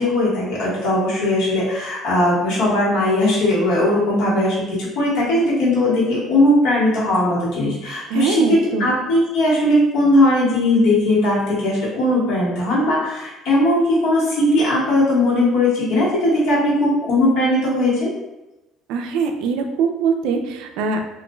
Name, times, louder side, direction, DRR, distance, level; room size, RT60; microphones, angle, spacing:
voice 1, 0.0-18.1, left 1 dB, 70° left, -6 dB, 1.2 m, -18 dB
voice 2, 8.1-8.9 18.9-21.0, right 5 dB, 75° right, 5 dB, 0.3 m, -22 dB
2.4 x 2.2 x 3.0 m, 0.97 s
cardioid pair, 150°, 0 cm